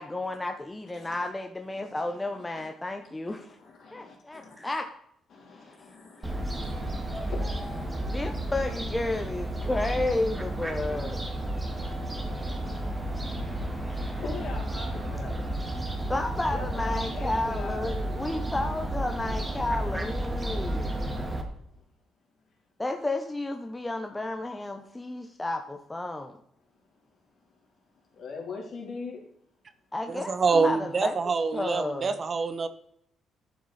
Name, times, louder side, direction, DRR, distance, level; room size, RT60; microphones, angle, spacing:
voice 1, 0.0-3.5 3.9-4.9 8.0-11.3 16.1-21.0 22.8-26.3 29.9-31.1 31.5-32.2, left 2 dB, 15° left, 0.8 m, -32 dB
voice 2, 0.9-1.3 1.8-2.7 3.3-4.6 5.3-8.5 9.1-9.2 9.5-9.8 10.1-10.2 11.4-15.4 16.5-18.3 21.5-21.8 26.6-29.2, left 4 dB, 60° left, 3.3 m, -44 dB
Fowl, 6.2-21.4, right 1 dB, 15° right, 1.8 m, -32 dB
voice 3, 30.1-32.7, right 4 dB, 40° right, 0.8 m, -26 dB
11.0 x 6.2 x 4.2 m
cardioid pair, 90°, 0 cm